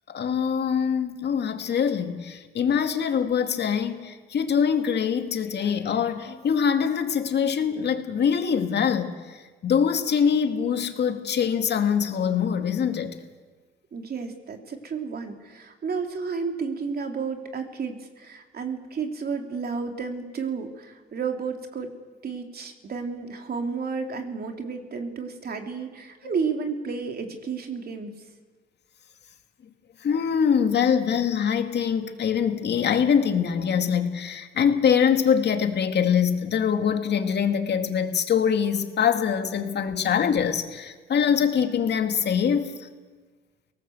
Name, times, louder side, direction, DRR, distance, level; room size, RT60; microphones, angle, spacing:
voice 1, 0.1-13.2 30.0-42.9, left 7 dB, 60° left, 6 dB, 2.3 m, -24 dB
voice 2, 13.9-21.9 22.2-28.1, right 5 dB, 50° right, 4 dB, 3.1 m, -32 dB
22.0 x 18.5 x 8.0 m, 1.4 s
cardioid pair, 90°, 20 cm